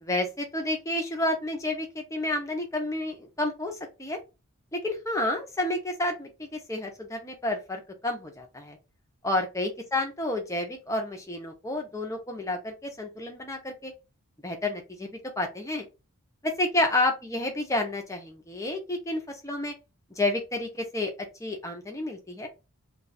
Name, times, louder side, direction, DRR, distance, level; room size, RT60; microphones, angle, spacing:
voice 1, 0.0-4.2 4.7-8.8 9.2-13.9 14.4-15.1 15.4-15.9 16.4-19.7 20.2-21.1 21.4-22.5, left 1 dB, 15° left, 3 dB, 0.7 m, -30 dB
2.4 x 2.4 x 4.1 m, 0.27 s
head